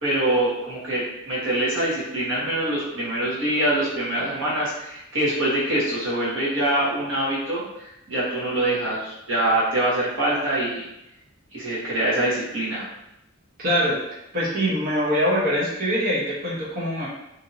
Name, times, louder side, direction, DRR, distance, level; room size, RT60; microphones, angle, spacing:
voice 1, 0.0-10.8 11.5-12.8, right 1 dB, 60° right, -8 dB, 1.3 m, -24 dB
voice 2, 13.6-14.0 14.3-17.1, equal, 45° right, -5 dB, 0.9 m, -23 dB
2.9 x 2.6 x 2.7 m, 0.86 s
head